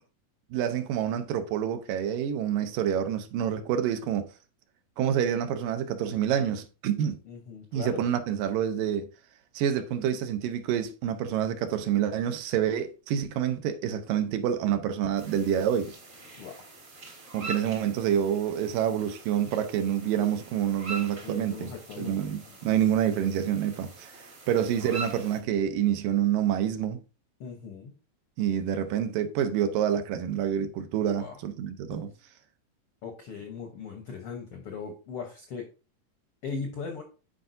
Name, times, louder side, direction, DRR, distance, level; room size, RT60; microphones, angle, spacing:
voice 1, 0.5-4.3 5.0-7.2 7.7-9.1 9.6-15.9 17.3-21.7 22.0-24.1 24.5-27.0 28.4-32.1, right 9 dB, 80° right, 2.3 m, -27 dB
voice 2, 7.2-8.1 16.4-16.6 21.2-22.8 24.5-24.9 27.4-27.9 31.2-31.4 33.0-35.7 36.4-37.0, left 5 dB, 80° left, 1.2 m, -39 dB
sound 1, 15.2-25.4, right 2 dB, 45° right, 0.9 m, -43 dB
10.0 x 4.5 x 2.6 m
omnidirectional pair, 4.0 m